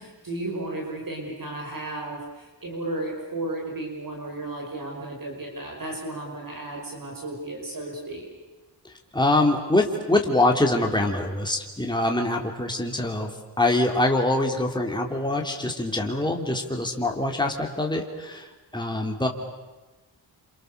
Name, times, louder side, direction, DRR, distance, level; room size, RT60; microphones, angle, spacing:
voice 1, 0.0-8.2, right 2 dB, 50° right, 0 dB, 5.9 m, -34 dB
voice 2, 8.8-13.3 13.6-19.3, left 2 dB, 10° left, 1 dB, 3.3 m, -24 dB
29.0 x 27.5 x 6.8 m, 1.2 s
wide cardioid pair, 90°, 44 cm